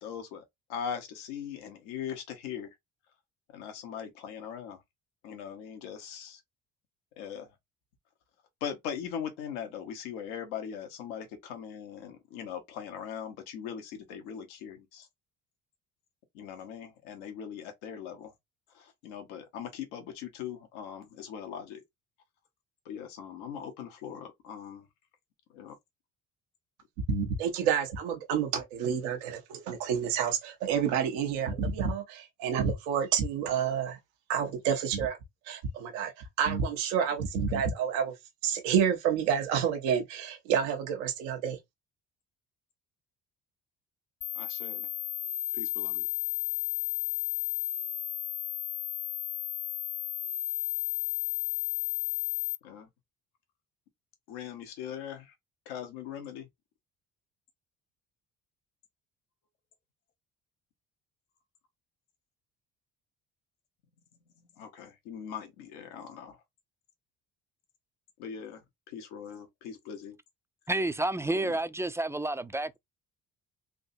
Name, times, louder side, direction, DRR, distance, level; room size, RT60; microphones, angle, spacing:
voice 1, 0.0-2.7 3.5-4.8 5.2-6.4 7.2-7.5 8.6-15.1 16.3-18.3 18.7-21.8 22.8-24.9 25.5-25.8 44.3-44.9 45.5-46.1 52.6-52.9 54.3-55.3 55.7-56.5 64.6-66.4 68.2-68.6 68.9-70.2 71.3-71.6, left 8 dB, 90° left, 1.1 m, -40 dB
voice 2, 27.1-34.0 34.3-35.2 35.5-36.1 36.4-38.1 38.4-41.6, right 7 dB, 90° right, 0.9 m, -29 dB
sound 1, 44.2-52.6, left 15 dB, 50° left, 0.5 m, -33 dB
voice 3, 70.7-72.8, right 2 dB, 10° right, 0.3 m, -30 dB
3.7 x 2.7 x 2.6 m
supercardioid pair, 65°, 35 cm